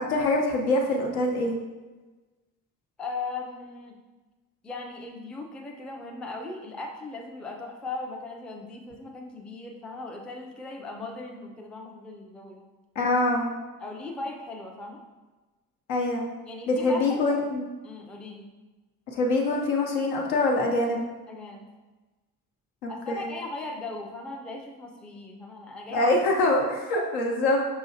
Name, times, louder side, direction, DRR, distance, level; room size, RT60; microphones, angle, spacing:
voice 1, 0.0-1.6 13.0-13.5 15.9-16.3 16.7-17.7 19.1-21.0 22.8-23.3 25.9-27.6, left 2 dB, 70° left, 0 dB, 0.8 m, -24 dB
voice 2, 3.0-3.9 4.6-12.6 13.8-15.0 16.5-17.2 17.8-18.5 21.3-21.7 22.9-26.1, left 3 dB, ahead, 1 dB, 0.4 m, -38 dB
5.5 x 2.8 x 2.8 m, 1.2 s
figure-of-eight pair, 45°, 47 cm